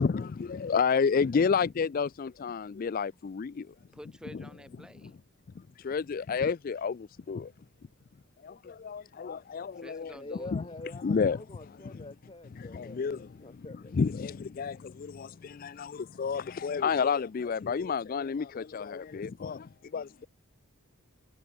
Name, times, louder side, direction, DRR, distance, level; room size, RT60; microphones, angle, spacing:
voice 1, 0.0-3.7 5.8-7.5 8.4-10.6 11.0-12.1 12.5-20.3, left 5 dB, 40° left, 0.3 m, -31 dB
voice 2, 3.9-5.2 9.8-10.5, equal, 5° right, 2.6 m, -49 dB
voice 3, 10.1-13.9, left 2 dB, 25° left, 1.2 m, -46 dB
head